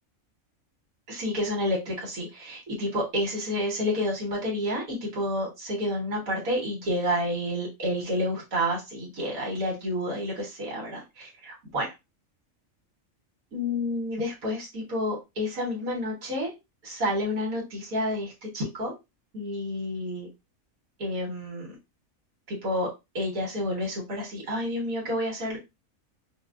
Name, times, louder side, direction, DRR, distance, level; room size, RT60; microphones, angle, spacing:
voice 1, 1.1-11.9 13.5-16.5 16.8-18.9 19.3-20.3 21.0-21.7 22.5-22.9 23.2-25.6, left 1 dB, 85° right, -2 dB, 1.8 m, -29 dB
5.1 x 2.1 x 2.5 m, 0.22 s
omnidirectional pair, 1.4 m